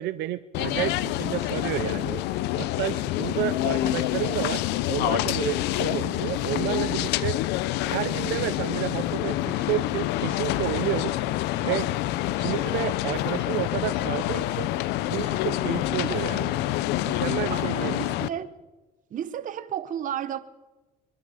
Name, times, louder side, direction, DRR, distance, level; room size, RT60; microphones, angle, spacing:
voice 1, 0.0-2.2 2.6-4.6 4.9-7.4 7.9-11.2 11.6-11.9 12.4-14.7 15.0-16.6 17.0-18.0, right 14 dB, 80° right, 0.5 m, -31 dB
sound 1, 0.5-18.3, left 15 dB, 90° left, 0.5 m, -27 dB
voice 2, 17.4-18.5 19.1-20.4, right 9 dB, 50° right, 0.8 m, -33 dB
22.0 x 11.5 x 5.0 m
cardioid pair, 110°, 17 cm